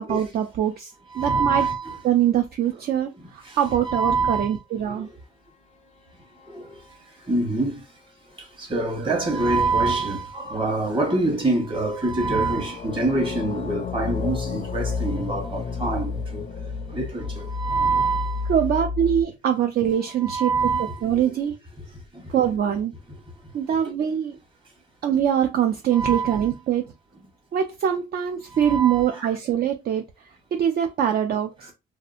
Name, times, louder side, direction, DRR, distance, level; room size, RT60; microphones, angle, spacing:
voice 1, 0.0-1.7 2.0-5.1 9.0-9.1 10.8-10.9 18.5-20.6 21.0-21.5 22.3-22.9 23.5-24.4 25.0-26.9 27.5-30.1 30.5-31.7, right 9 dB, 50° right, 0.4 m, -23 dB
voice 2, 1.2-2.0 3.9-4.5 7.3-7.7 8.6-16.4 16.9-18.4 20.2-20.9 25.9-26.4 28.6-29.2, right 3 dB, 25° right, 1.1 m, -25 dB
sound 1, 5.9-7.1 12.3-19.2, left 5 dB, 35° left, 0.4 m, -31 dB
2.7 x 2.4 x 2.5 m
cardioid pair, 90°, 20 cm